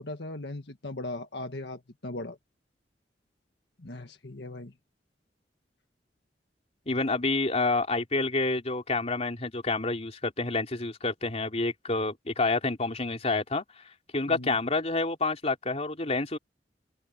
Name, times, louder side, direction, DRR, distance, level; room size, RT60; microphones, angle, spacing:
voice 1, 0.0-2.4 3.8-4.7 14.3-14.6, left 2 dB, 70° left, 1.6 m, -38 dB
voice 2, 6.9-13.6 14.1-16.4, left 3 dB, 40° left, 3.3 m, -28 dB
open air
head